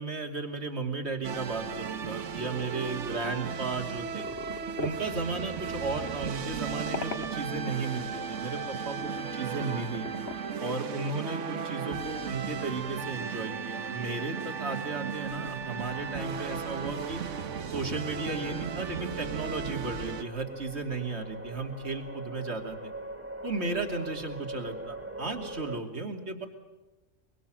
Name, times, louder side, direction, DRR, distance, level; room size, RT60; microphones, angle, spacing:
voice 1, 0.0-4.3 4.8-10.1 10.6-17.2 17.7-22.9 23.4-26.5, right 3 dB, 60° right, 4 dB, 3.0 m, -35 dB
sound 1, 1.2-20.2, right 7 dB, 75° right, 1.3 m, -36 dB
sound 2, 4.0-10.5, left 4 dB, 55° left, 1.4 m, -42 dB
sound 3, 15.2-25.8, right 1 dB, 10° right, 2.1 m, -43 dB
23.5 x 23.5 x 7.6 m, 1.2 s
omnidirectional pair, 1.2 m